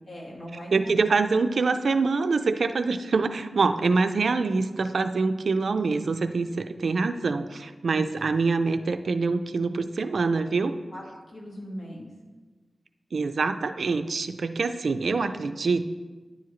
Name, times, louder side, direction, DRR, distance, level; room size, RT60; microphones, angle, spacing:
voice 1, 0.1-1.0 7.9-8.0 10.9-12.1, equal, 60° left, -3 dB, 1.5 m, -40 dB
voice 2, 0.7-10.7 13.1-15.9, right 4 dB, 80° right, 9 dB, 0.3 m, -25 dB
10.0 x 4.8 x 3.1 m, 1.3 s
wide cardioid pair, 115°, 0 cm